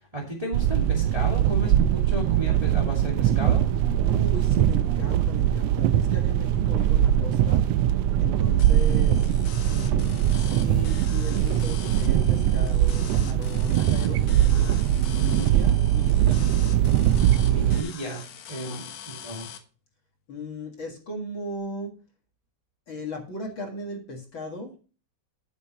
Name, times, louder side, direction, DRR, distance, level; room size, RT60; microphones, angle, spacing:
voice 1, 0.1-3.6 17.5-19.5, right 1 dB, 15° right, -1 dB, 2.0 m, -34 dB
sound 1, 0.5-17.8, right 11 dB, 85° right, 1.4 m, -21 dB
voice 2, 4.0-7.7 8.2-9.3 9.7-14.8 15.2-16.8 18.5-18.9 20.3-22.0 22.9-24.8, left 2 dB, 45° left, 1 dB, 2.4 m, -37 dB
sound 2, 8.6-19.6, left 8 dB, 85° left, 2.8 m, -43 dB
12.0 x 8.0 x 3.0 m, 0.35 s
omnidirectional pair, 3.4 m